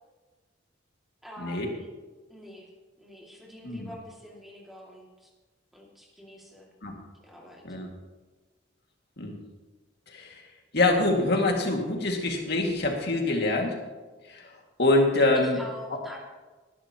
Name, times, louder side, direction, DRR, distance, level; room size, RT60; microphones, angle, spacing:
voice 1, 1.2-1.9 2.3-2.7 3.0-5.3 5.7-6.7 7.2-7.7 15.3-16.2, left 1 dB, ahead, -2 dB, 2.3 m, -46 dB
voice 2, 10.1-10.4 10.7-13.8 14.3-15.6, left 2 dB, 60° left, 1 dB, 2.2 m, -25 dB
19.5 x 11.0 x 3.0 m, 1.3 s
head